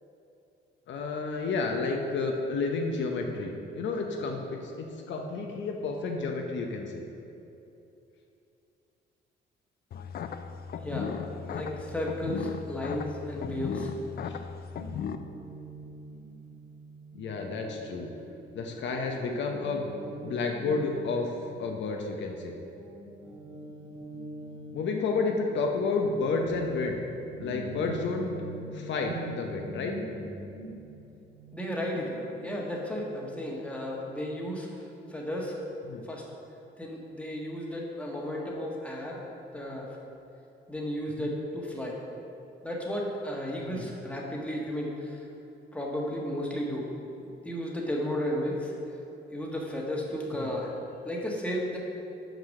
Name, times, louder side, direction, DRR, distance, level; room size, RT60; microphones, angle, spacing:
voice 1, 0.9-7.0 13.4-13.6 14.2-14.4 17.1-18.1 18.5-19.9 20.2-21.3 21.6-22.6 24.7-27.0 27.4-28.3 28.7-29.9 35.8-36.1 41.2-41.3 43.7-43.9 50.4-50.5, left 3 dB, 65° left, 2 dB, 0.8 m, -31 dB
sound 1, 9.9-15.2, left 7 dB, 50° left, 0.4 m, -36 dB
voice 2, 10.8-11.1 11.5-13.9 31.5-34.7 35.1-35.6 36.1-36.2 36.8-39.2 39.5-39.9 40.7-42.0 42.6-45.2 45.7-46.9 47.4-48.7 49.3-50.7 51.0-51.8, equal, 5° left, -2 dB, 1.4 m, -33 dB
Guitar, 14.7-22.4 22.7-33.2, right 1 dB, 90° right, 1.6 m, -44 dB
6.1 x 5.0 x 6.4 m, 2.8 s
cardioid pair, 90°, 20 cm